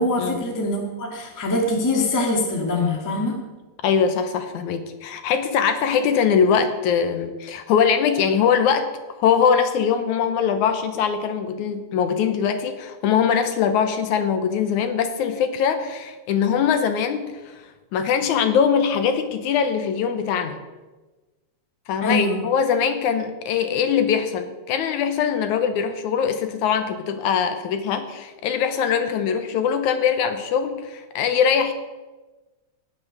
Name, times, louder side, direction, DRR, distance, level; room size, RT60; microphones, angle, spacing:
voice 1, 0.0-3.4 22.0-22.4, left 2 dB, 10° left, 1 dB, 1.0 m, -23 dB
voice 2, 3.8-8.9 9.2-17.6 17.9-20.6 21.9-31.7, left 7 dB, 75° left, 8 dB, 2.1 m, -22 dB
17.0 x 6.1 x 6.5 m, 1.2 s
omnidirectional pair, 3.7 m